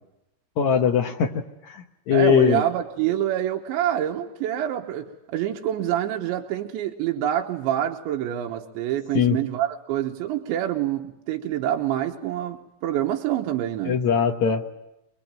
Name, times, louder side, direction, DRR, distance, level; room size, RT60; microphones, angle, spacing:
voice 1, 0.6-1.3 1.7-2.6 9.1-9.4 13.9-14.6, left 8 dB, 80° left, 4 dB, 1.6 m, -21 dB
voice 2, 2.1-5.1 5.3-14.0, right 11 dB, 90° right, 2 dB, 3.5 m, -26 dB
24.5 x 21.5 x 8.9 m, 0.89 s
omnidirectional pair, 5.1 m